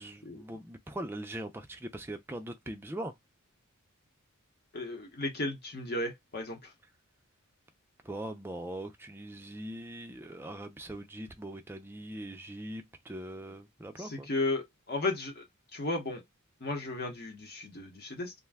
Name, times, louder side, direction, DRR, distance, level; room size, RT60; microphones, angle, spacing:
voice 1, 0.0-3.1 8.0-14.3, right 1 dB, 10° right, 0.4 m, -41 dB
voice 2, 4.7-6.6 14.0-15.4 15.7-16.2 16.6-18.3, left 2 dB, 45° left, 0.9 m, -34 dB
2.5 x 2.2 x 3.4 m
head